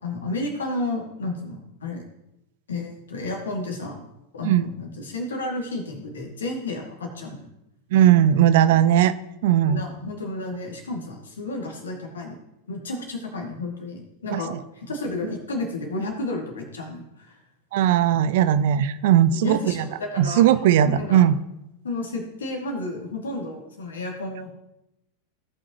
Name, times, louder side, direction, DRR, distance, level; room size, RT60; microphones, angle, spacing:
voice 1, 0.0-2.0 2.7-4.0 4.3-7.5 9.6-12.4 12.7-17.4 18.1-18.2 19.3-20.4 20.8-21.2 21.8-24.5, left 2 dB, 70° left, 1 dB, 2.3 m, -32 dB
voice 2, 7.9-9.1 9.4-9.8 14.3-14.4 17.7-19.8 20.2-21.4, right 10 dB, 50° right, 14 dB, 0.5 m, -18 dB
17.5 x 6.0 x 3.0 m, 0.88 s
figure-of-eight pair, 90°, 0 cm